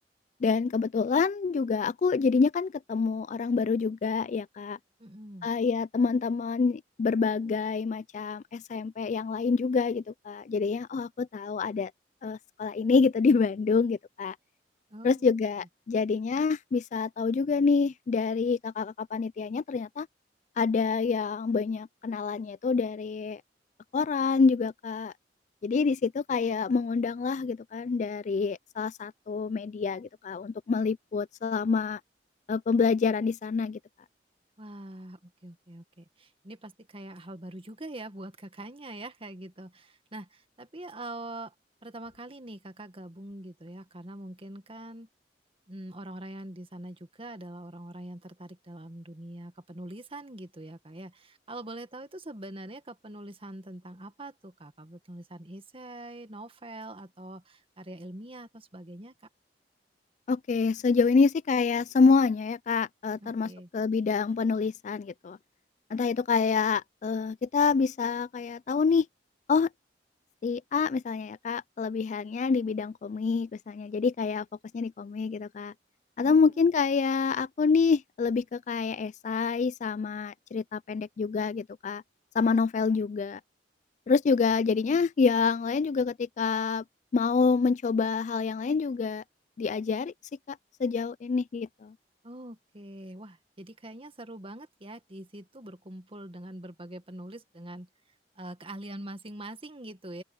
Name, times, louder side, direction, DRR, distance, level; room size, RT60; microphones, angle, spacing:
voice 1, 0.4-4.8 5.4-11.9 12.2-14.4 15.0-20.1 20.6-23.4 23.9-25.1 25.6-32.0 32.5-33.8 60.3-65.4 65.9-69.1 69.5-69.7 70.4-74.5 74.7-75.7 76.2-82.0 82.3-83.4 84.1-86.8 87.1-89.2 89.6-90.1 90.5-91.9, left 5 dB, 45° left, 0.3 m, -27 dB
voice 2, 5.0-5.5 14.9-15.3 34.6-41.5 41.8-45.1 45.7-59.1 63.2-63.7 76.2-76.7 92.2-97.9 98.4-100.2, right 1 dB, 35° right, 1.8 m, -43 dB
open air
head